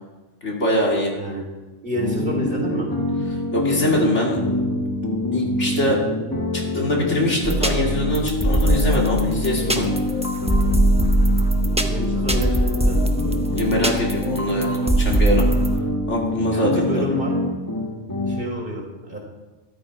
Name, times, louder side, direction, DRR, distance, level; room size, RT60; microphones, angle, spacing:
voice 1, 0.4-1.2 3.5-4.4 5.3-6.0 6.5-9.9 13.5-15.4 16.1-17.0, left 1 dB, 65° left, -2 dB, 3.0 m, -23 dB
voice 2, 1.8-2.9 11.9-13.0 16.5-17.3 18.3-19.2, equal, 45° right, -1 dB, 3.4 m, -28 dB
sound 1, 1.9-18.4, left 2 dB, 15° left, 1.5 m, -25 dB
sound 2, 7.4-15.8, right 1 dB, 5° right, 0.7 m, -21 dB
13.5 x 12.5 x 4.8 m, 1.2 s
omnidirectional pair, 1.3 m